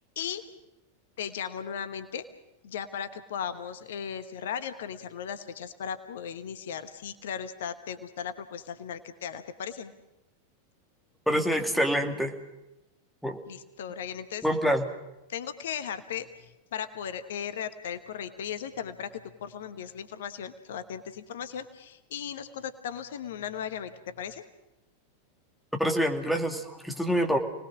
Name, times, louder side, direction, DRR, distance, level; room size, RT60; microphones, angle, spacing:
voice 1, 1.2-2.2 2.6-9.9 13.5-14.4 15.3-19.1 19.4-23.9 24.2-24.4, left 8 dB, 60° left, 11 dB, 1.1 m, -37 dB
voice 2, 11.3-12.3 13.2-13.4 14.4-14.8 25.8-27.4, equal, ahead, 3 dB, 2.4 m, -26 dB
29.5 x 20.0 x 6.2 m, 0.96 s
figure-of-eight pair, 90°, 0 cm